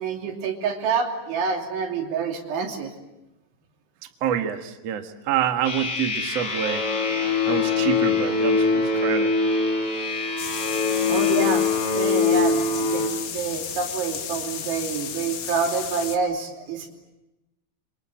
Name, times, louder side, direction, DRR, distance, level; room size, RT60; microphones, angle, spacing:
voice 1, 0.0-2.9 11.1-11.7 11.9-17.0, right 5 dB, 75° right, 2 dB, 5.3 m, -27 dB
voice 2, 4.2-6.8 7.5-9.3, right 9 dB, 60° right, 5 dB, 1.7 m, -27 dB
sound 1, 5.6-13.1, left 4 dB, 30° left, 5.1 m, -23 dB
sound 2, 10.4-16.2, left 8 dB, 60° left, 2.8 m, -33 dB
28.0 x 25.5 x 7.8 m, 0.98 s
omnidirectional pair, 5.5 m